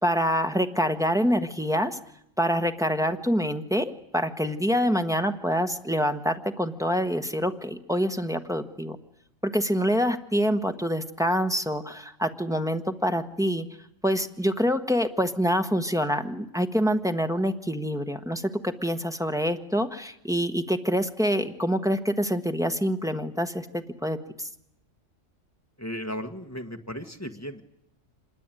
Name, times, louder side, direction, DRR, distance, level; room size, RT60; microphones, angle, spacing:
voice 1, 0.0-2.0 2.4-9.0 9.4-13.7 14.0-24.5, equal, 5° right, 6 dB, 1.2 m, -26 dB
voice 2, 25.8-27.6, equal, 15° left, 6 dB, 1.5 m, -35 dB
26.0 x 21.0 x 9.1 m, 0.78 s
omnidirectional pair, 1.3 m